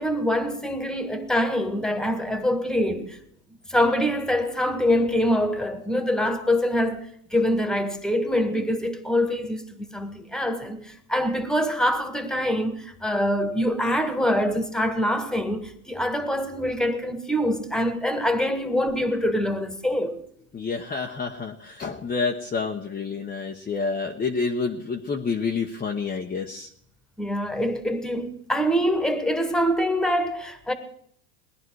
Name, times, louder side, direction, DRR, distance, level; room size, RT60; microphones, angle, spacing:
voice 1, 0.0-3.2 3.7-20.2 27.2-30.7, equal, ahead, 1.7 m, -25 dB
voice 2, 20.5-26.7, left 4 dB, 20° left, 1.1 m, -28 dB
19.5 x 10.5 x 4.7 m
hypercardioid pair, 105°, 46 cm